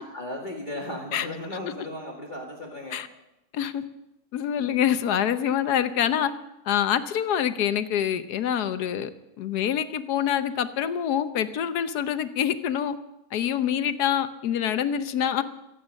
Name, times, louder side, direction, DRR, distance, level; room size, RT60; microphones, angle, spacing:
voice 1, 0.0-3.0, left 1 dB, 30° left, -1 dB, 2.1 m, -36 dB
voice 2, 4.3-6.3 6.6-9.1 9.4-13.0 13.3-15.4, left 9 dB, 90° left, 12 dB, 1.4 m, -26 dB
24.5 x 8.7 x 6.4 m, 0.89 s
omnidirectional pair, 1.6 m